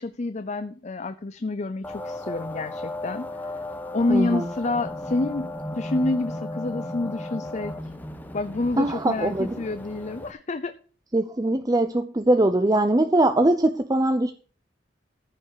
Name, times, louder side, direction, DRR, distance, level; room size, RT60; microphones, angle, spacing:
voice 1, 0.0-3.3 3.9-5.5 5.7-7.7 8.3-10.8, left 2 dB, 40° left, 11 dB, 0.6 m, -28 dB
sound 1, 1.8-10.3, left 1 dB, 10° left, 1.0 m, -35 dB
voice 2, 4.1-4.5 8.8-9.6 11.1-14.3, right 1 dB, 20° right, 8 dB, 0.6 m, -22 dB
14.5 x 5.4 x 6.5 m, 0.42 s
head